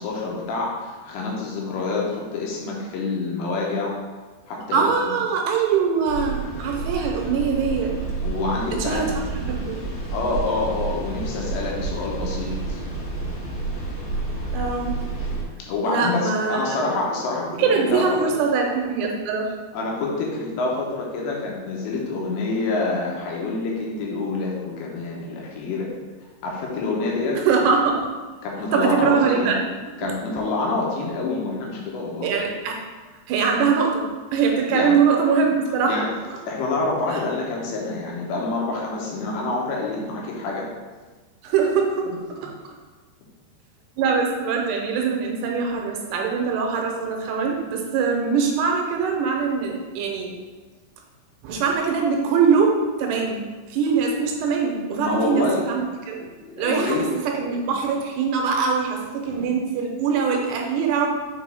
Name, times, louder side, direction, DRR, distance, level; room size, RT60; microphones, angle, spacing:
voice 1, 0.0-3.9 4.5-5.1 8.2-9.2 10.1-12.8 15.7-18.0 19.7-25.9 26.4-27.4 28.4-29.5 30.0-32.3 34.7-35.0 35.9-36.1 36.5-40.7 54.9-55.6 56.4-57.1 59.3-59.5, left 3 dB, 80° left, -2 dB, 3.2 m, -27 dB
voice 2, 4.7-7.9 8.8-9.1 9.5-9.8 14.5-14.9 15.8-16.8 17.6-19.5 27.3-28.1 28.7-29.6 32.2-32.8 33.3-34.0 34.3-36.0 37.1-37.2 41.4-42.1 42.4-42.5 44.0-50.3 51.4-52.7 53.0-56.2 56.6-57.0 57.3-61.1, right 5 dB, 80° right, 1 dB, 2.7 m, -22 dB
sound 1, 6.1-15.4, right 3 dB, 60° left, 3.3 m, -30 dB
6.7 x 4.7 x 3.5 m, 1.3 s
omnidirectional pair, 5.1 m